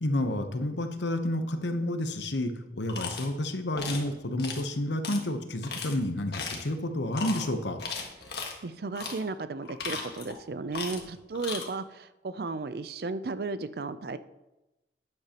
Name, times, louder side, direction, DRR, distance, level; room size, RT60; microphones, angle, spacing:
voice 1, 0.0-7.8, left 1 dB, 85° left, 7 dB, 0.9 m, -30 dB
sound 1, 2.9-3.3 3.8-4.1 4.4-4.6 5.0-5.2 5.6-5.9 6.3-6.7 7.1-7.4 7.8-8.5 9.0-9.2 9.6-10.4 10.7-11.1 11.3-11.7, left 5 dB, 65° left, 1.6 m, -36 dB
voice 2, 8.6-14.2, right 3 dB, 60° right, 13 dB, 0.5 m, -34 dB
11.5 x 9.7 x 2.9 m, 0.99 s
head